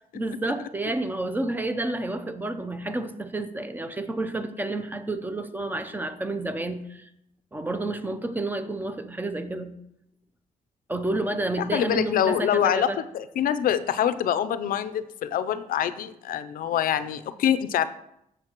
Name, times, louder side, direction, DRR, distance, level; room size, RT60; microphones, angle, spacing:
voice 1, 0.1-7.1 7.5-9.8 10.9-13.0, right 2 dB, 15° right, 9 dB, 0.7 m, -30 dB
voice 2, 11.7-17.9, left 10 dB, 90° left, 13 dB, 0.5 m, -25 dB
14.0 x 6.5 x 3.0 m, 0.79 s
wide cardioid pair, 150°, 14 cm